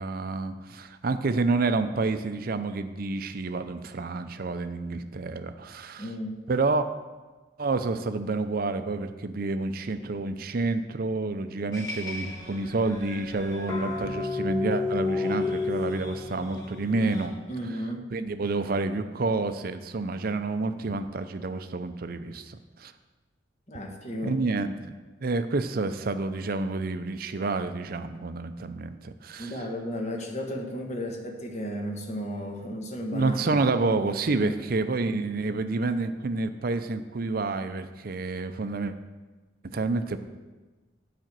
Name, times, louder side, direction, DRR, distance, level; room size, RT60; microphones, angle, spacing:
voice 1, 0.0-6.1 6.5-6.9 7.6-17.3 18.1-22.9 24.2-24.9 25.2-29.5 33.1-38.9 39.6-40.2, right 3 dB, 50° right, 9 dB, 0.5 m, -29 dB
voice 2, 6.0-6.4 17.5-18.0 23.7-24.4 29.4-33.6 34.4-34.5, equal, 40° left, 1 dB, 1.3 m, -34 dB
sound 1, 11.7-17.3, left 4 dB, 20° left, 1.4 m, -32 dB
9.2 x 5.1 x 7.4 m, 1.2 s
head